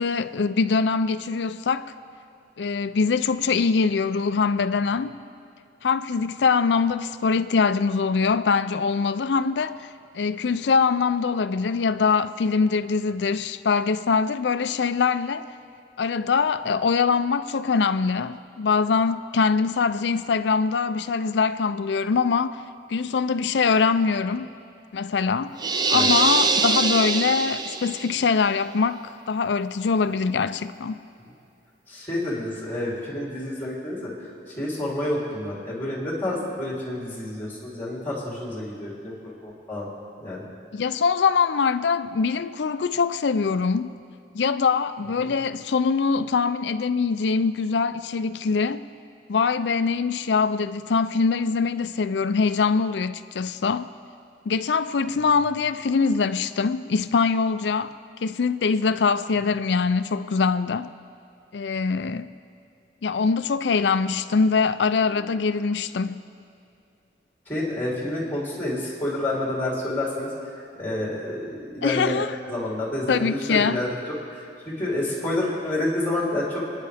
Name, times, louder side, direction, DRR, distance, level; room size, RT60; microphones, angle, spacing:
voice 1, 0.0-1.9 2.6-5.2 5.8-9.7 10.1-15.5 16.0-22.6 22.9-24.5 24.9-25.6 25.9-31.0 40.7-44.0 44.3-48.8 49.3-53.9 54.5-57.9 58.2-60.9 61.5-62.3 63.0-66.2 71.8-72.3 73.1-73.8, left 5 dB, 75° left, 0.5 m, -23 dB
sound 1, 25.6-28.1, right 4 dB, 25° right, 0.6 m, -23 dB
voice 2, 31.9-34.1 34.6-39.9 40.2-40.4 45.2-45.3 67.5-70.3 70.8-72.2 72.5-74.0 74.3-76.6, left 1 dB, 10° left, 3.4 m, -29 dB
28.5 x 9.9 x 3.5 m
head